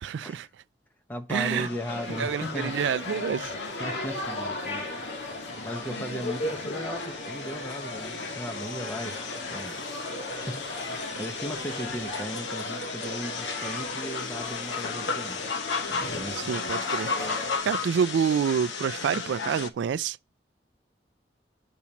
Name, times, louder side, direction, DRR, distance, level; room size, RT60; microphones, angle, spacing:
voice 1, 0.0-0.5 1.3-1.7 2.2-3.5 16.5-17.1 17.6-20.2, right 7 dB, 80° right, 0.3 m, -27 dB
voice 2, 1.1-2.8 3.3-3.5 3.8-4.8 5.4-9.2 9.5-15.4 15.9-16.5, equal, 10° left, 0.9 m, -37 dB
sound 1, 1.4-19.7, left 4 dB, 90° left, 0.9 m, -35 dB
sound 2, 1.9-17.6, left 1 dB, 75° left, 1.9 m, -37 dB
8.3 x 7.1 x 2.9 m
head